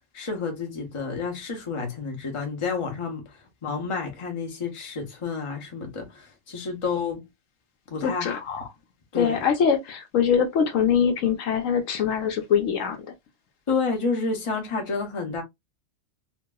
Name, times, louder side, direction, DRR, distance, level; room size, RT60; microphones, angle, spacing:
voice 1, 0.1-3.2 3.6-7.2 7.9-8.7 9.1-9.4 13.7-15.4, left 4 dB, 30° left, 0.8 m, -30 dB
voice 2, 8.0-8.4 9.1-13.1, left 7 dB, 75° left, 1.0 m, -23 dB
2.8 x 2.6 x 2.2 m
omnidirectional pair, 1.4 m